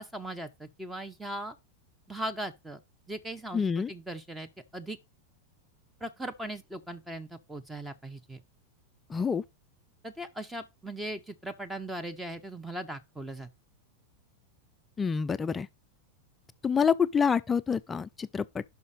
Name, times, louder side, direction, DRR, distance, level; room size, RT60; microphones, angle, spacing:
voice 1, 0.0-1.5 2.1-2.8 3.1-3.6 3.9-5.0 6.0-8.4 10.0-13.5, right 1 dB, 10° right, 0.7 m, -39 dB
voice 2, 3.5-3.9 9.1-9.4 15.0-15.7 16.6-18.6, left 6 dB, 15° left, 0.4 m, -27 dB
5.8 x 5.3 x 6.3 m
figure-of-eight pair, 90°, 0 cm